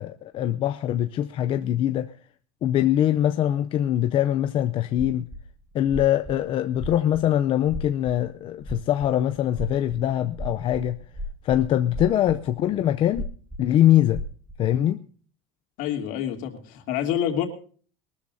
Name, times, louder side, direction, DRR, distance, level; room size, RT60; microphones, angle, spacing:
voice 1, 0.0-2.1 2.6-5.3 5.7-11.0 11.4-13.3 13.6-14.2 14.6-15.0, left 12 dB, 30° left, 0.6 m, -23 dB
sound 1, 5.3-5.4 5.7-6.5 6.7-7.2 7.6-8.2 8.5-13.7 13.9-14.5, left 1 dB, 5° left, 2.1 m, -35 dB
voice 2, 15.8-17.5, left 10 dB, 55° left, 2.9 m, -27 dB
22.5 x 13.0 x 2.7 m
cardioid pair, 165°, 17 cm